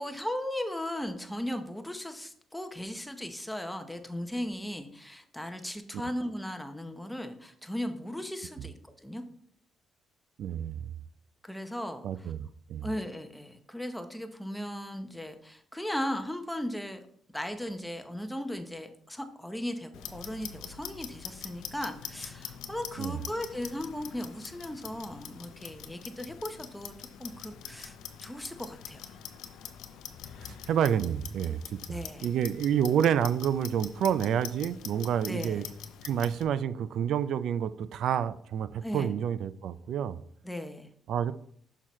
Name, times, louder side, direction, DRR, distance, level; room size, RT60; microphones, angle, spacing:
voice 1, 0.0-9.2 11.4-12.3 12.8-17.0 17.3-29.1 31.9-32.2 35.3-35.6 38.8-39.1 40.4-40.9, left 1 dB, 5° left, 0.8 m, -37 dB
voice 2, 10.4-10.9 12.0-12.9 23.0-23.2 30.4-35.6 36.0-40.2 41.1-41.3, right 9 dB, 75° right, 0.3 m, -29 dB
Clock, 19.9-36.4, left 9 dB, 85° left, 0.5 m, -44 dB
6.3 x 5.8 x 3.1 m
cardioid pair, 90°, 0 cm